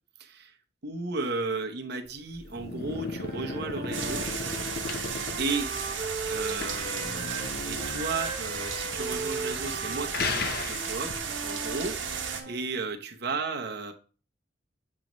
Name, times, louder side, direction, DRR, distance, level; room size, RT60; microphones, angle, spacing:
voice 1, 0.2-0.6 0.8-4.2 5.4-13.9, right 3 dB, 60° right, 3 dB, 0.9 m, -34 dB
sound 1, 2.1-11.3, left 4 dB, 55° left, 0.7 m, -37 dB
Wind instrument woodwind instrument, 3.1-7.5 7.8-12.6, right 3 dB, 45° right, 1.2 m, -38 dB
sound 2, 3.9-12.4, right 6 dB, 80° right, 1.3 m, -34 dB
7.4 x 3.1 x 5.2 m, 0.37 s
head